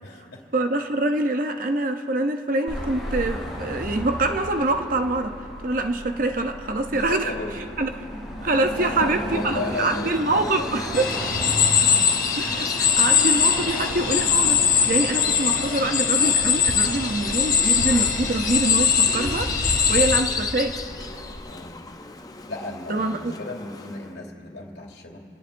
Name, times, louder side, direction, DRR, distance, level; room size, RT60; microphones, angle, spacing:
voice 1, 0.0-0.4 6.9-7.6 8.7-10.8 13.5-14.0 15.1-16.6 21.5-21.8 22.5-25.2, left 2 dB, 60° left, -2 dB, 2.6 m, -36 dB
voice 2, 0.5-5.4 5.6-7.3 7.8-8.0 8.4-11.1 12.4-20.8 22.9-23.3, right 2 dB, 45° right, 6 dB, 0.7 m, -25 dB
Car passing by / Traffic noise roadway noise / Engine, 2.7-21.4, equal, ahead, 4.2 m, -36 dB
Bird vocalization bird call bird song, 9.3-24.1, left 4 dB, 20° left, 0.5 m, -35 dB
sound 1, 10.9-20.2, left 7 dB, 45° left, 1.4 m, -21 dB
27.5 x 18.0 x 2.6 m, 2.6 s
head